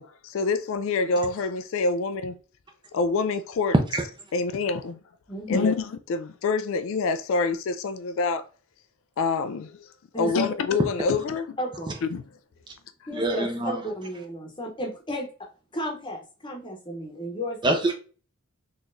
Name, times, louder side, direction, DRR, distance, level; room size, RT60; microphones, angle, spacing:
voice 1, 0.0-2.4 2.9-3.7 4.3-5.0 5.5-8.5 9.2-9.9 10.2-11.6 12.1-12.2, left 4 dB, 65° left, 0.3 m, -26 dB
voice 2, 5.3-5.7 10.1-10.3 11.6-12.0 13.1-17.8, equal, 20° left, 0.8 m, -34 dB
voice 3, 13.1-13.7 17.6-18.0, right 2 dB, 20° right, 0.5 m, -24 dB
3.9 x 2.9 x 2.5 m
head